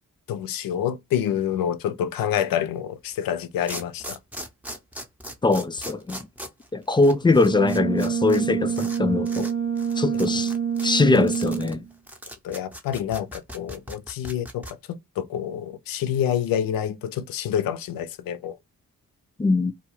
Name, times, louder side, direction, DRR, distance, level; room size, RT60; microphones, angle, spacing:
voice 1, 0.3-4.2 12.4-18.6, left 9 dB, 65° left, 0.5 m, -27 dB
sound 1, 3.1-3.2 3.7-8.4 8.7-9.0 9.2-9.5 9.8-14.7, equal, 5° right, 0.7 m, -38 dB
voice 2, 5.4-6.3 6.7-9.5 10.0-10.5 10.8-11.8 19.4-19.7, left 3 dB, 15° left, 0.3 m, -21 dB
Brass instrument, 7.4-11.8, right 7 dB, 90° right, 1.1 m, -26 dB
2.4 x 2.3 x 3.1 m
hypercardioid pair, 40°, 38 cm